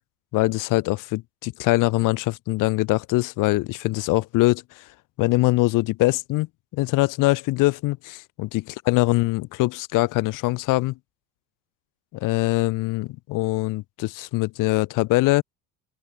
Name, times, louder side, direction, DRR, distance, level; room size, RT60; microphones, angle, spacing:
voice 1, 0.3-4.8 5.2-6.5 6.7-8.5 8.9-11.0 12.1-15.4, left 20 dB, 45° left, 0.7 m, -23 dB
hypercardioid pair, 95°, 46 cm